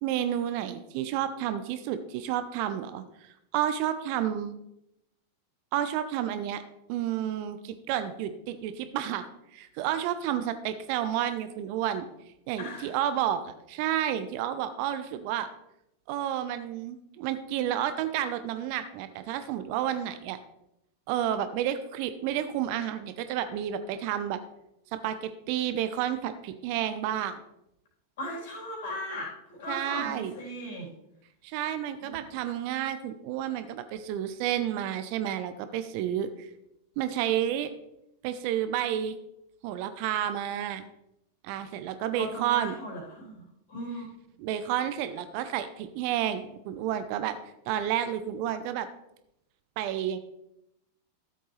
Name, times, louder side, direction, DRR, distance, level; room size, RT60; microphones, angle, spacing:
voice 1, 0.0-3.0 3.5-4.5 5.7-6.6 6.9-9.2 9.5-12.1 12.5-15.5 16.1-20.4 21.1-24.4 24.9-27.4 29.7-30.3 31.4-36.5 37.0-37.7 38.2-39.1 39.6-40.8 41.4-42.7 44.4-47.4 47.7-48.9 49.8-50.2, right 11 dB, 45° right, 11 dB, 0.7 m, -30 dB
voice 2, 12.6-12.9 28.2-30.9 32.0-32.4 42.1-43.4 43.7-44.1, equal, 55° left, -2 dB, 3.7 m, -37 dB
13.0 x 7.8 x 3.3 m, 0.83 s
figure-of-eight pair, 90°, 0 cm